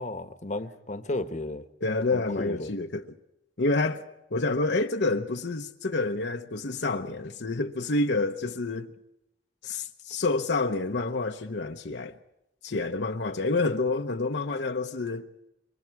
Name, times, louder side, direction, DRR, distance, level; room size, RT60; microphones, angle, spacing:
voice 1, 0.0-1.6 2.1-2.7, left 2 dB, 45° left, 1.2 m, -34 dB
voice 2, 1.8-3.1 3.6-4.1 4.3-8.9 9.6-12.2 12.6-15.3, left 3 dB, 70° left, 0.9 m, -28 dB
28.0 x 23.5 x 4.7 m
head